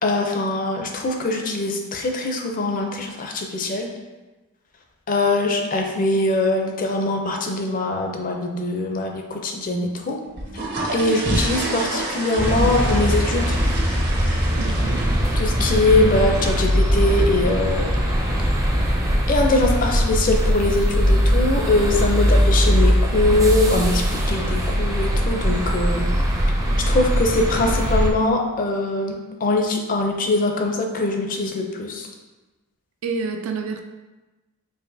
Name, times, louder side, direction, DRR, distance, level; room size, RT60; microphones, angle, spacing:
voice 1, 0.0-3.9 5.1-10.2 10.9-13.6 15.4-18.0 19.3-26.1 26.8-32.1, left 2 dB, 40° left, 3 dB, 0.5 m, -22 dB
sound 1, 10.2-19.3, right 2 dB, 55° right, 0.8 m, -31 dB
sound 2, 12.4-28.1, equal, 15° right, 0.5 m, -20 dB
voice 2, 14.6-15.1 33.0-33.8, right 4 dB, 75° right, 5 dB, 0.4 m, -28 dB
4.7 x 2.8 x 2.6 m, 1.2 s
head